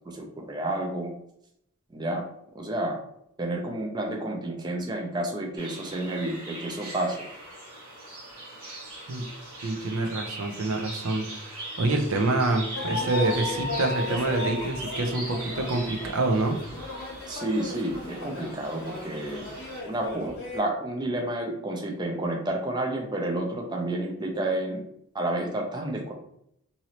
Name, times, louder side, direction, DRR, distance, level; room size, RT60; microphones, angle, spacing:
voice 1, 0.1-1.1 1.9-2.2 2.5-3.0 3.4-7.2 17.3-19.5 19.9-24.8 25.1-26.1, right 1 dB, 20° right, 1 dB, 0.4 m, -30 dB
sound 1, 5.6-19.8, right 1 dB, 90° right, 1.1 m, -40 dB
voice 2, 9.6-16.6, right 2 dB, 70° right, 4 dB, 0.5 m, -27 dB
sound 2, 12.7-20.6, left 3 dB, 50° left, 0.8 m, -35 dB
3.0 x 2.7 x 2.9 m, 0.75 s
head